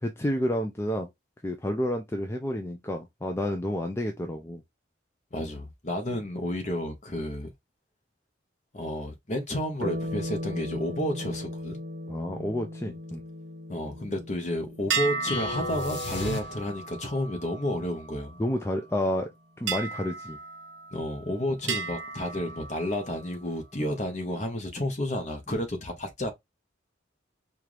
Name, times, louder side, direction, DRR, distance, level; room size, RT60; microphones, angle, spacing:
voice 1, 0.0-1.1 1.4-4.6 12.1-13.2 18.4-19.3 19.6-20.4 23.8-23.9 25.5-25.6, left 1 dB, 15° left, 0.4 m, -30 dB
voice 2, 5.3-7.5 8.7-11.8 13.7-18.4 20.9-26.3, left 1 dB, 40° left, 1.0 m, -31 dB
sound 1, 9.8-18.7, left 1 dB, 55° right, 0.7 m, -39 dB
sound 2, 14.9-18.6 19.7-21.2 21.7-23.4, right 5 dB, 90° right, 0.8 m, -35 dB
sound 3, 15.3-17.0, left 3 dB, 70° left, 1.2 m, -34 dB
4.5 x 2.4 x 3.2 m
head